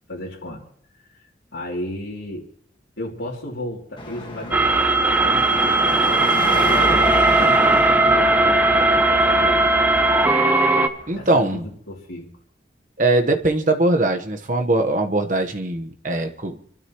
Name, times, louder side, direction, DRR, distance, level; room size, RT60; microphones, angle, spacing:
voice 1, 0.1-0.6 1.5-2.4 3.0-9.7 11.1-12.3, left 1 dB, 90° left, -5 dB, 2.9 m, -34 dB
Car passing by / Traffic noise roadway noise / Engine, 4.0-11.3, left 1 dB, 25° left, 1.7 m, -30 dB
sound 1, 4.5-10.9, right 2 dB, 10° right, 0.7 m, -17 dB
voice 2, 11.1-11.6 13.0-16.6, right 2 dB, 45° right, 5 dB, 1.2 m, -21 dB
28.0 x 13.0 x 3.1 m, 0.63 s
head